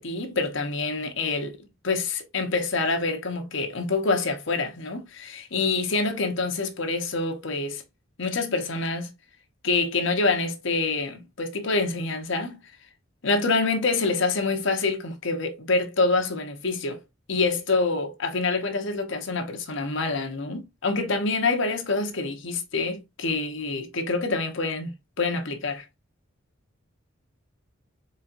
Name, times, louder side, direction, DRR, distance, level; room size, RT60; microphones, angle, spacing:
voice 1, 0.0-1.6 1.8-7.8 8.2-9.1 9.6-12.6 13.2-17.0 17.3-25.8, left 3 dB, 70° left, 0.9 m, -26 dB
4.4 x 3.5 x 2.5 m
head